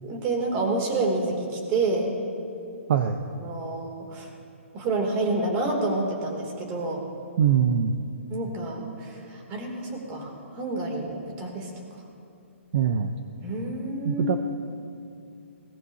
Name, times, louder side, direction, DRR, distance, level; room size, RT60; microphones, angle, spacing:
voice 1, 0.0-2.1 3.4-4.3 4.7-7.0 8.3-11.7 13.4-14.3, right 2 dB, 25° right, 1 dB, 2.9 m, -28 dB
voice 2, 7.4-8.0 12.7-13.1 14.0-14.4, right 8 dB, 50° right, 7 dB, 0.7 m, -22 dB
22.5 x 18.5 x 2.8 m, 2.5 s
hypercardioid pair, 155°, 7 cm